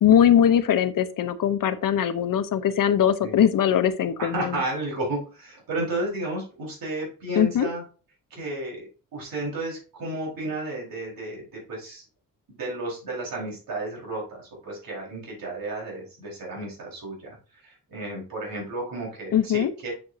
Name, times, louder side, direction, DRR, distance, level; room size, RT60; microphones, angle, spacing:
voice 1, 0.0-4.6 7.4-7.7 19.3-19.7, left 9 dB, 75° left, 11 dB, 0.9 m, -21 dB
voice 2, 4.2-7.8 8.3-12.0 12.5-19.9, right 2 dB, 85° right, -3 dB, 4.6 m, -32 dB
7.8 x 7.1 x 2.7 m, 0.36 s
wide cardioid pair, 150°, 33 cm